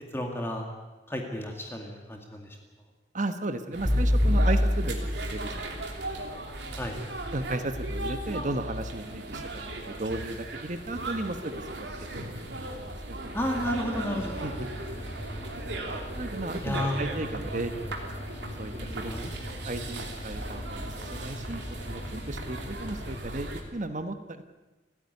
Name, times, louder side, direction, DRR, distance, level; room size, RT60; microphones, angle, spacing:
voice 1, 0.1-0.7 1.1-2.5 6.8-7.0 13.3-14.3 16.6-17.0 19.1-19.2, left 1 dB, 15° left, 2 dB, 2.1 m, -32 dB
voice 2, 3.1-5.9 7.3-9.5 9.8-13.3 14.4-14.7 16.1-17.7 18.0-18.1 18.6-19.3 19.6-24.4, right 2 dB, 45° right, 9 dB, 1.1 m, -35 dB
sound 1, 3.7-23.6, right 1 dB, 75° right, 2.9 m, -37 dB
sound 2, 3.9-6.1, left 1 dB, 30° right, 5.8 m, -25 dB
sound 3, 13.6-23.2, equal, 35° left, 1.8 m, -41 dB
29.5 x 10.0 x 9.7 m, 1.2 s
head